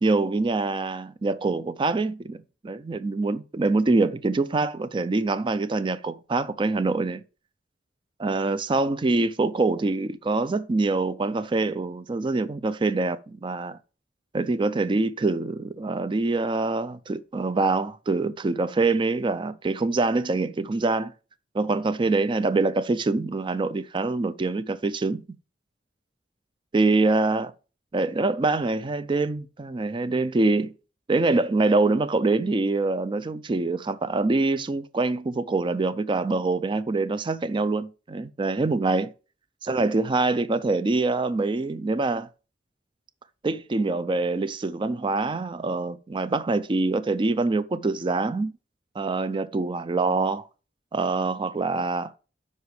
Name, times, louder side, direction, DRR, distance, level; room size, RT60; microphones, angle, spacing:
voice 1, 0.0-2.4 2.6-7.2 8.2-13.8 14.3-21.1 21.5-25.2 26.7-27.5 27.9-30.7 31.1-39.1 39.6-42.3 43.4-48.5 49.0-50.5 50.9-52.2, right 3 dB, 30° right, 0.4 m, -25 dB
13.0 x 5.5 x 3.3 m
head